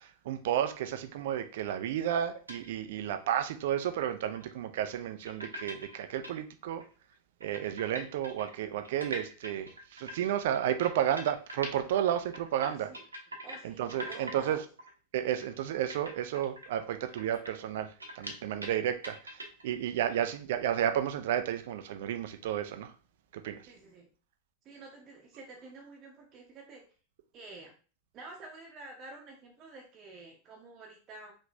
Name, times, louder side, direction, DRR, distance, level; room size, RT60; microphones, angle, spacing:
voice 1, 0.0-6.8 7.4-12.9 13.6-14.6 15.1-22.9 23.3-23.7, right 10 dB, 55° right, 0.5 m, -32 dB
sound 1, 2.5-2.7 3.1-3.2 4.3-4.5 5.2-6.3 6.8-6.9 7.1-7.2 7.4-11.8 12.1-13.6 13.9-14.5 14.8-14.9 15.4-15.6 15.9-18.8 19.0-19.6, equal, 80° right, 1.0 m, -43 dB
voice 2, 12.6-13.0 13.4-14.6 23.7-24.1 24.6-26.8 27.3-27.7 28.1-31.3, right 3 dB, 30° right, 0.9 m, -49 dB
4.9 x 3.2 x 2.6 m
figure-of-eight pair, 90°, 0 cm